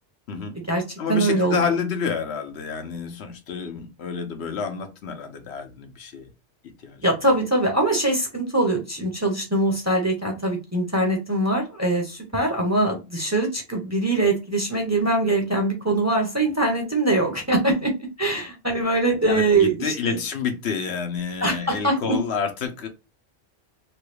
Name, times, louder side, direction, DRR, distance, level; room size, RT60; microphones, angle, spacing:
voice 1, 0.3-0.6 1.0-6.3 6.8-7.1 19.3-22.9, left 6 dB, 75° left, 1.0 m, -29 dB
voice 2, 1.1-1.6 7.0-20.2 21.4-22.2, right 2 dB, 20° right, 0.7 m, -22 dB
3.1 x 2.3 x 3.2 m
omnidirectional pair, 1.1 m